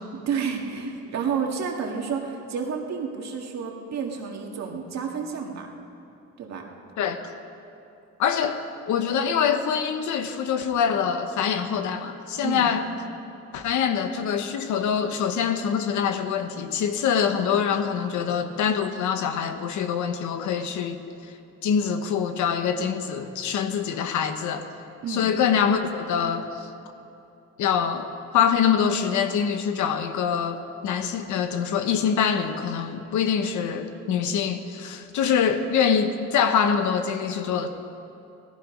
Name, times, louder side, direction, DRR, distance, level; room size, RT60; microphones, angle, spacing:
voice 1, 0.3-5.7 6.4-6.6 12.4-12.7 25.0-25.3, right 6 dB, 65° right, 1 dB, 2.0 m, -30 dB
voice 2, 8.2-8.6 8.9-12.8 13.5-21.0 21.6-24.7 25.1-26.7 27.6-28.1 28.3-37.7, left 7 dB, 80° left, 8 dB, 1.1 m, -24 dB
17.5 x 14.5 x 5.3 m, 2.8 s
cardioid pair, 120°, 29 cm